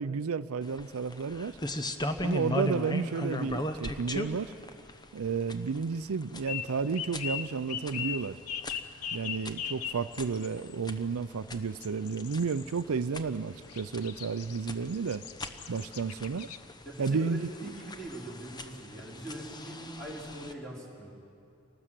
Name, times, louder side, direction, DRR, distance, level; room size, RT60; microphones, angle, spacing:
voice 1, 0.0-1.6 2.2-4.5 5.1-8.4 9.1-15.2 15.7-16.5 17.0-17.7, right 5 dB, 75° right, 13 dB, 0.5 m, -32 dB
sound 1, 0.6-20.5, left 1 dB, 20° left, 0.8 m, -39 dB
sound 2, 6.5-16.6, left 8 dB, 90° left, 0.8 m, -41 dB
voice 2, 16.8-21.1, right 1 dB, 5° left, -4 dB, 4.4 m, -42 dB
27.0 x 19.0 x 7.6 m, 2.5 s
head